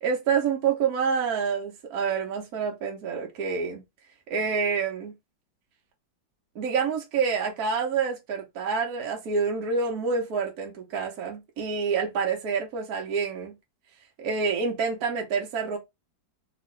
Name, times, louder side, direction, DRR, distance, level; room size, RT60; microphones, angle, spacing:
voice 1, 0.0-3.8 4.3-5.1 6.5-13.5 14.2-15.8, right 5 dB, 60° right, 1.2 m, -27 dB
3.0 x 3.0 x 3.1 m
omnidirectional pair, 2.1 m